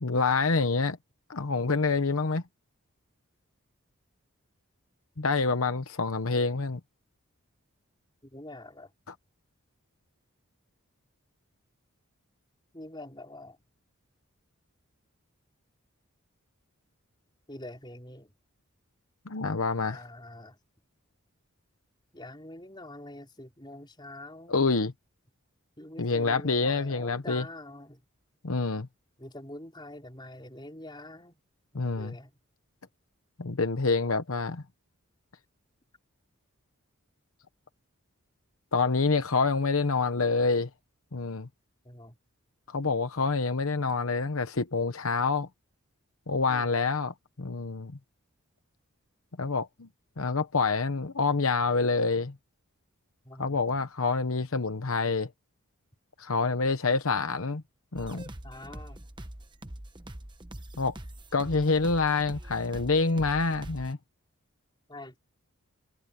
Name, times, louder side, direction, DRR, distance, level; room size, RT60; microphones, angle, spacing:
voice 1, 0.0-1.0 1.3-2.4 5.2-6.8 19.3-20.0 24.5-24.9 26.0-27.4 28.4-28.9 31.7-32.1 33.4-34.6 38.7-40.7 41.1-41.5 42.7-45.5 46.3-47.9 49.4-49.9 50.2-52.3 53.4-55.3 56.2-57.6 57.9-58.2 60.8-60.9 61.3-64.0, left 4 dB, 70° left, 1.0 m, -27 dB
voice 2, 8.2-8.9 12.7-13.6 17.5-18.3 19.9-20.6 22.1-24.6 25.8-28.0 29.2-31.3 31.7-32.3 41.8-42.2 46.5-46.7 53.2-53.6 58.4-59.0 64.9-65.2, left 1 dB, 20° left, 5.0 m, -45 dB
sound 1, 58.0-63.9, right 1 dB, 20° right, 1.2 m, -44 dB
head